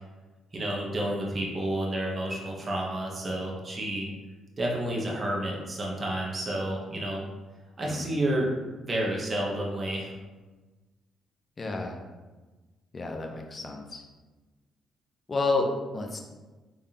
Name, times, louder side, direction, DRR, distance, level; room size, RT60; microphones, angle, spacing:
voice 1, 0.5-4.1 4.6-7.2 7.8-8.5 8.8-10.1, right 1 dB, 30° right, -3 dB, 0.9 m, -30 dB
voice 2, 11.6-12.0 12.9-14.0 15.3-16.2, left 3 dB, 35° left, 2 dB, 0.6 m, -30 dB
3.6 x 3.5 x 2.8 m, 1.2 s
cardioid pair, 90°, 0 cm